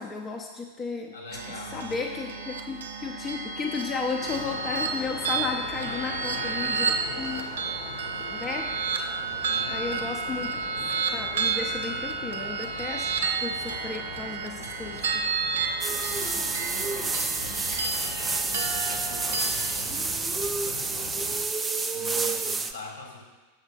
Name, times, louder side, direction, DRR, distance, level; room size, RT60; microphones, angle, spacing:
voice 1, 0.0-1.1 1.5-7.5 8.3-8.8 9.7-10.5 11.1-13.1 13.4-15.1, left 4 dB, 25° left, 1 dB, 0.7 m, -34 dB
voice 2, 1.1-2.0 2.3-2.4 5.9-7.7 8.2-8.4 9.4-10.7 16.1-21.3 21.9-23.3, left 2 dB, 70° left, 2 dB, 1.7 m, -44 dB
sound 1, 1.3-19.7, right 4 dB, 65° right, 0.7 m, -31 dB
sound 2, 4.2-21.4, left 3 dB, 50° left, 1.1 m, -42 dB
sound 3, 15.8-22.7, right 4 dB, 15° right, 0.5 m, -29 dB
6.9 x 6.5 x 4.9 m, 1.2 s
figure-of-eight pair, 90°, 0 cm